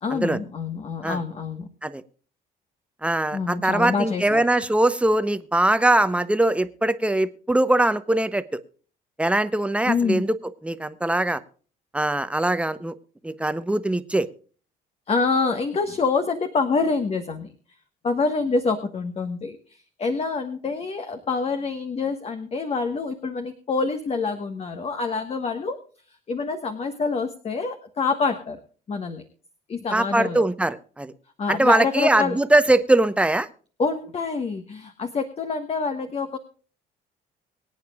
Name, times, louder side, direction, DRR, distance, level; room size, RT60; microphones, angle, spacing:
voice 1, 0.0-1.7 3.3-4.4 9.9-10.2 15.1-17.5 18.0-25.8 26.3-28.6 28.9-29.2 29.7-30.4 31.4-32.4 33.8-36.4, left 4 dB, 35° left, 7 dB, 1.4 m, -26 dB
voice 2, 3.0-8.6 9.2-10.4 10.6-11.4 11.9-12.9 13.2-14.3 29.9-31.1 31.5-33.5, right 1 dB, 5° right, 12 dB, 0.9 m, -21 dB
24.0 x 9.1 x 2.4 m, 0.41 s
cardioid pair, 110°, 17 cm